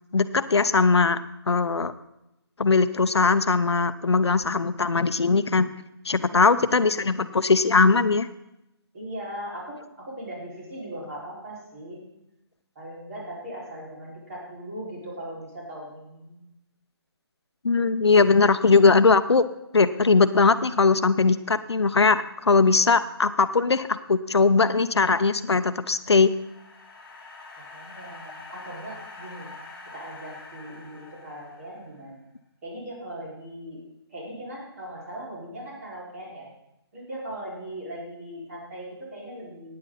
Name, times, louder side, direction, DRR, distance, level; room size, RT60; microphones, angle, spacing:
voice 1, 0.1-1.2 1.5-1.9 2.6-5.7 6.0-8.3 17.6-19.4 19.7-26.3, left 4 dB, 90° left, 13 dB, 0.8 m, -20 dB
voice 2, 6.2-7.4 8.9-12.0 12.8-16.4 27.6-29.6 29.9-32.2 32.6-33.8 34.1-36.5 36.9-39.8, right 1 dB, 35° right, -5 dB, 5.4 m, -39 dB
sound 1, 25.7-32.1, left 3 dB, 10° left, 1.7 m, -45 dB
14.5 x 9.8 x 4.2 m, 0.88 s
hypercardioid pair, 165°, 14 cm